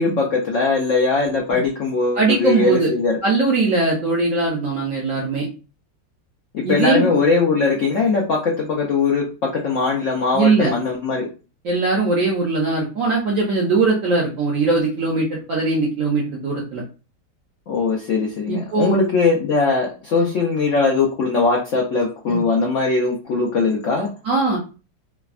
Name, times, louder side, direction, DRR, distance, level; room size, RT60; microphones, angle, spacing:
voice 1, 0.0-3.2 6.5-11.3 17.7-24.1, left 4 dB, 80° left, -2 dB, 0.7 m, -20 dB
voice 2, 2.1-2.9 3.2-5.5 6.6-7.1 10.3-10.7 11.6-16.8 18.5-19.0 20.2-20.3 22.3-22.4 24.2-24.6, right 3 dB, 65° right, -3 dB, 0.8 m, -20 dB
3.3 x 2.0 x 2.4 m, 0.34 s
omnidirectional pair, 2.1 m